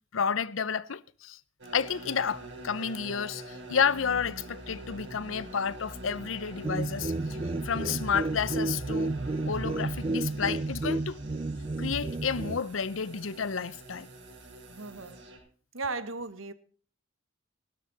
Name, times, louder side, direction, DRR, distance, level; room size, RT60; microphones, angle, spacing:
voice 1, 0.1-1.4 1.7-7.4 7.6-9.1 9.5-11.2 11.8-14.1, left 6 dB, 80° left, 0.7 m, -31 dB
sound 1, 1.6-15.4, right 1 dB, 60° right, 5.5 m, -45 dB
sound 2, 6.6-12.6, right 2 dB, 30° right, 0.5 m, -32 dB
voice 2, 14.7-15.2 15.7-16.5, right 3 dB, 85° right, 1.4 m, -36 dB
16.0 x 13.0 x 4.1 m
head